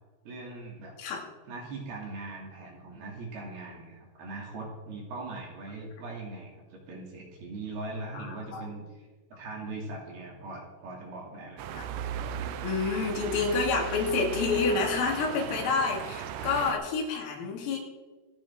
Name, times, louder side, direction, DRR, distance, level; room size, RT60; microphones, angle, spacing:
voice 1, 0.3-0.9 1.5-11.8, right 2 dB, 55° right, -2 dB, 4.1 m, -40 dB
voice 2, 8.1-8.7 11.7-11.8 12.6-17.8, left 4 dB, 80° left, 0 dB, 4.9 m, -28 dB
sound 1, 11.6-16.7, right 9 dB, 90° right, 2.4 m, -36 dB
26.5 x 8.8 x 3.7 m, 1.3 s
omnidirectional pair, 6.0 m